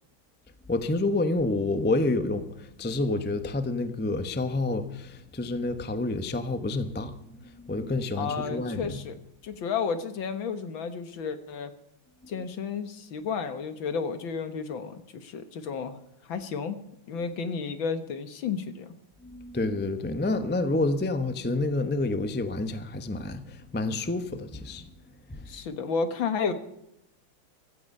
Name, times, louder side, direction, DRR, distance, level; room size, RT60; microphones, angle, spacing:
voice 1, 0.7-9.0 19.2-24.9 25.3-25.5, left 2 dB, 10° left, 0.4 m, -29 dB
voice 2, 8.2-11.7 12.3-16.8 17.1-18.9 25.5-26.5, left 5 dB, 65° left, 2.0 m, -32 dB
16.5 x 13.5 x 5.5 m
omnidirectional pair, 2.3 m